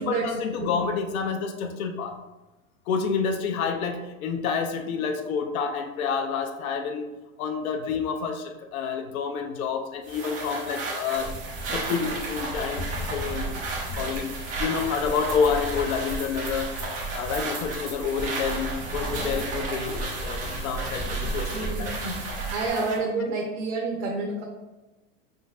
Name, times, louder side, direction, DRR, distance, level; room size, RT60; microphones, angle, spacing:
voice 1, 0.0-2.2 2.9-7.1 7.4-11.3 11.7-13.6 13.9-16.7 17.1-22.0, left 6 dB, 80° left, 5 dB, 0.7 m, -29 dB
sound 1, 10.0-23.0, right 3 dB, 20° right, 0.7 m, -34 dB
sound 2, 11.1-22.7, right 2 dB, 15° left, 0.6 m, -35 dB
voice 2, 21.5-22.2 22.5-24.4, right 3 dB, 60° right, -1 dB, 0.9 m, -29 dB
5.1 x 3.9 x 2.4 m, 1.1 s
supercardioid pair, 160°, 42 cm